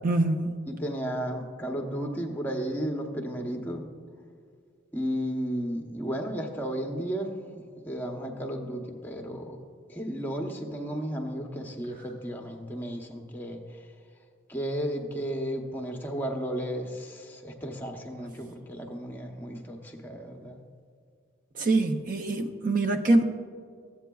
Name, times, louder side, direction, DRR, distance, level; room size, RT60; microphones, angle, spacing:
voice 1, 0.0-0.5 21.6-23.2, right 2 dB, 45° right, 6 dB, 0.4 m, -24 dB
voice 2, 0.8-3.8 4.9-7.3 7.8-9.6 9.9-13.6 14.5-20.6, equal, 10° left, 2 dB, 0.7 m, -33 dB
14.5 x 8.2 x 2.3 m, 2.2 s
head